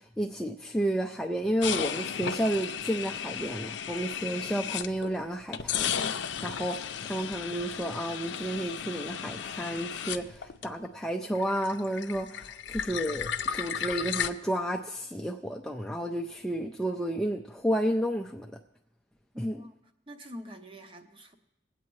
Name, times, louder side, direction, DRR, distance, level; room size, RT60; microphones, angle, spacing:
voice 1, 0.0-6.8 7.0-18.5 19.4-19.6, right 1 dB, 5° left, 2 dB, 0.4 m, -31 dB
sound 1, 1.6-5.1 5.5-11.1 11.4-14.3, left 8 dB, 70° left, 0.5 m, -34 dB
voice 2, 19.3-19.7 20.1-21.4, equal, 30° right, 6 dB, 0.8 m, -45 dB
20.0 x 8.3 x 3.1 m, 0.86 s
head